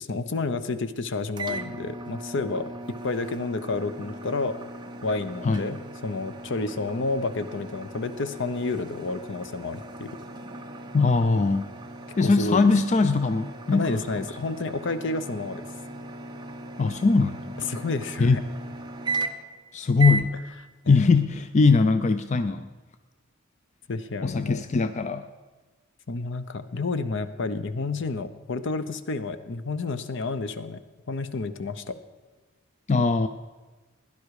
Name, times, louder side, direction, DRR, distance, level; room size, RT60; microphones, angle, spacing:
voice 1, 0.0-2.7 3.0-4.6 5.0-10.1 12.2-12.7 13.7-15.6 17.6-18.4 20.8-21.1 23.9-24.6 26.1-30.8 31.1-32.0, left 3 dB, 60° left, 12 dB, 0.7 m, -30 dB
sound 1, 1.4-19.6 20.0-20.3, right 3 dB, 20° right, 0.8 m, -37 dB
voice 2, 10.9-11.7 12.2-14.0 16.8-17.6 18.2-18.4 19.7-20.3 20.9-22.7 24.2-25.3 32.9-33.3, left 4 dB, 35° left, 10 dB, 0.4 m, -21 dB
16.5 x 10.5 x 4.8 m, 1.3 s
head